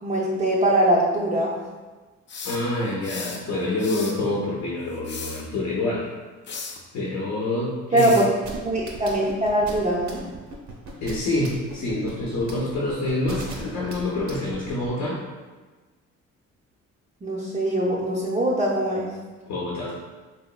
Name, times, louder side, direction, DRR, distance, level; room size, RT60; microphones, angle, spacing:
voice 1, 0.0-1.5 7.9-8.2 8.6-10.2 17.2-19.1, right 1 dB, 25° right, -6 dB, 0.5 m, -22 dB
fietspomp studio, 2.3-3.4 3.8-4.2 4.9-5.4 6.5-6.8 8.0-8.3, left 4 dB, 40° left, 0.4 m, -36 dB
voice 2, 2.4-6.1 6.9-8.2 11.0-15.2 19.5-19.9, left 2 dB, 65° left, -5 dB, 0.7 m, -27 dB
sound 1, 8.4-14.9, right 3 dB, 65° right, 0.8 m, -38 dB
3.5 x 2.8 x 2.2 m, 1.3 s
cardioid pair, 90°, 30 cm